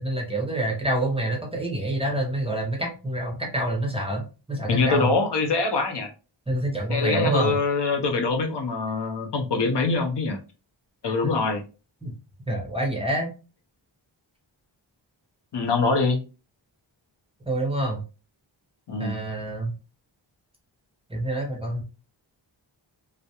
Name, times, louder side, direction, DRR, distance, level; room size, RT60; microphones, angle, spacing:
voice 1, 0.0-4.2 4.5-5.1 6.5-7.5 12.0-12.2 12.5-13.3 17.5-18.0 19.0-19.7 21.1-21.8, right 1 dB, 10° right, 0 dB, 0.7 m, -27 dB
voice 2, 4.7-6.1 6.9-10.4 11.0-11.6 15.5-16.2 18.9-19.2, left 3 dB, 60° left, 4 dB, 0.6 m, -24 dB
2.3 x 2.0 x 2.8 m, 0.32 s
wide cardioid pair, 100°, 47 cm